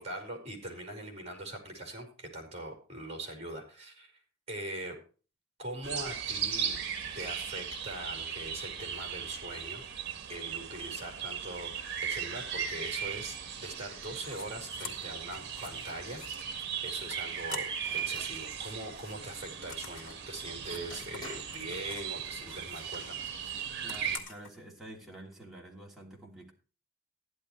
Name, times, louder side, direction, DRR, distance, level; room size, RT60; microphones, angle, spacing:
voice 1, 0.0-4.1 4.5-5.0 5.6-6.8 7.1-9.8 10.3-23.3, right 1 dB, 35° right, 2 dB, 4.6 m, -42 dB
sound 1, 5.8-24.2, right 7 dB, 55° right, 1.5 m, -38 dB
sound 2, 14.2-14.5 14.8-18.0 18.3-22.1 22.4-24.5, left 5 dB, 70° left, 2.3 m, -48 dB
sound 3, 17.8-18.4 20.4-20.5 20.9-21.6 22.6-23.0, left 2 dB, 25° left, 4.9 m, -48 dB
voice 2, 23.8-26.5, right 1 dB, ahead, -3 dB, 2.9 m, -48 dB
14.5 x 11.0 x 3.2 m, 0.36 s
head